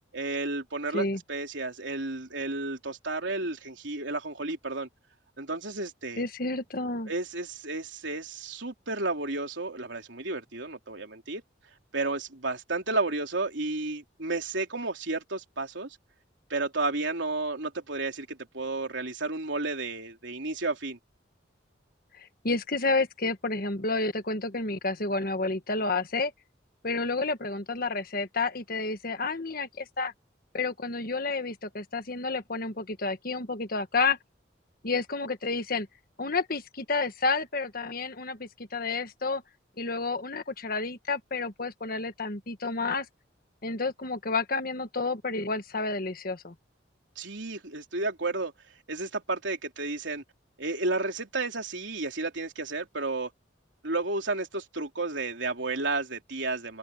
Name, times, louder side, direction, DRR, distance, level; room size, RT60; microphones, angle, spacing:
voice 1, 0.1-4.9 5.4-6.2 7.1-11.4 11.9-16.0 16.5-21.0 47.2-48.5 48.9-50.2 50.6-53.3 53.8-56.8, right 3 dB, 75° right, 3.5 m, -32 dB
voice 2, 6.2-7.1 22.1-26.3 26.8-30.1 30.5-34.2 34.8-35.9 36.2-39.4 39.8-43.1 43.6-46.5, left 3 dB, 50° left, 1.5 m, -30 dB
head